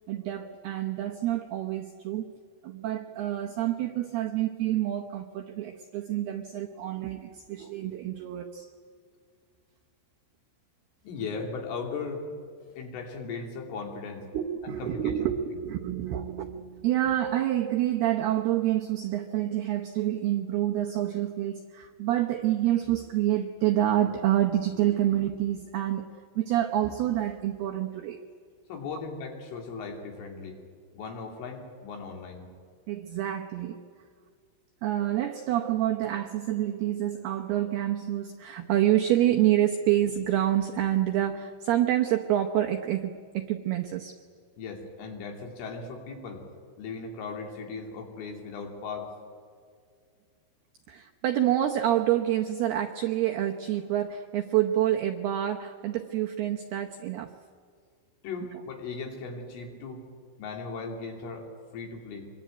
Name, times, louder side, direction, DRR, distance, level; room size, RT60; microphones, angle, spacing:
voice 1, 0.1-2.3 2.6-8.7 14.3-26.1 26.4-28.2 32.9-33.8 34.8-44.2 50.9-57.3, right 12 dB, 80° right, 3 dB, 2.3 m, -27 dB
voice 2, 11.0-12.3 12.7-14.3 14.6-15.3 28.7-30.6 30.9-32.5 44.6-46.4 46.8-49.1 58.2-60.0 60.4-61.5 61.7-62.3, left 4 dB, 75° left, 1 dB, 5.4 m, -37 dB
25.0 x 22.5 x 9.3 m, 2.1 s
omnidirectional pair, 5.9 m